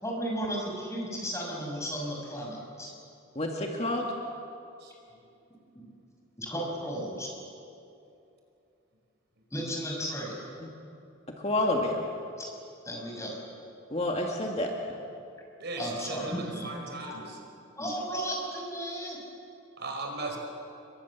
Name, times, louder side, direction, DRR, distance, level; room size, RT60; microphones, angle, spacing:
voice 1, 0.0-2.9 6.4-7.3 9.5-10.3 12.4-12.5 12.8-13.3 15.8-16.7 17.8-19.2, equal, 15° left, -1 dB, 6.4 m, -34 dB
voice 2, 3.4-4.1 10.6-10.7 11.4-12.0 13.9-14.7, left 1 dB, 30° left, 0 dB, 2.1 m, -29 dB
voice 3, 15.6-16.3 16.6-17.4 19.8-20.4, right 2 dB, 55° right, 2 dB, 5.3 m, -37 dB
30.0 x 23.0 x 7.4 m, 2.6 s
head